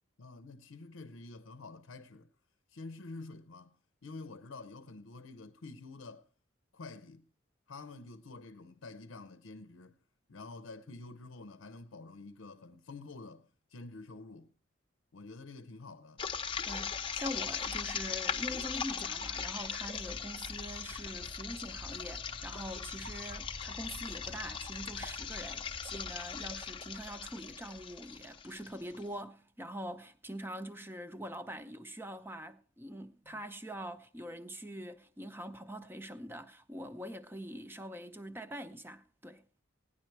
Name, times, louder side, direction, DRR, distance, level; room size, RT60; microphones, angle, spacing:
voice 1, 0.2-2.3 2.7-3.8 4.0-6.3 6.7-7.2 7.7-10.0 10.3-14.5 15.1-16.2 33.3-33.4, left 3 dB, 90° left, 0.6 m, -48 dB
sound 1, 16.2-29.0, left 6 dB, 25° left, 0.7 m, -39 dB
voice 2, 16.7-39.4, equal, 10° right, 0.6 m, -44 dB
16.5 x 10.0 x 4.6 m
head